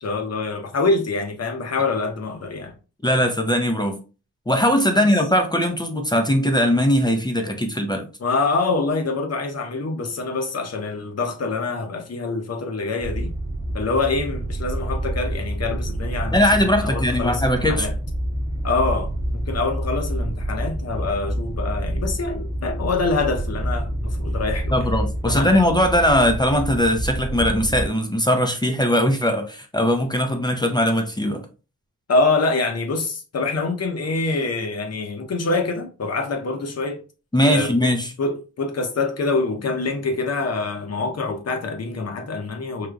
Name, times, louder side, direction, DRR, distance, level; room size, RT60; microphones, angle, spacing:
voice 1, 0.0-2.7 4.9-5.1 8.2-13.3 13.7-17.9 18.6-24.9 25.3-25.6 32.1-37.0 37.4-37.9 38.2-42.9, left 3 dB, 50° left, 0.9 m, -25 dB
voice 2, 3.0-4.0 4.5-8.1 16.3-17.9 24.7-31.5 37.3-38.1, equal, 15° left, 0.5 m, -20 dB
sound 1, 13.0-27.9, right 1 dB, 10° right, 0.9 m, -27 dB
4.9 x 2.8 x 2.4 m
wide cardioid pair, 115°, 33 cm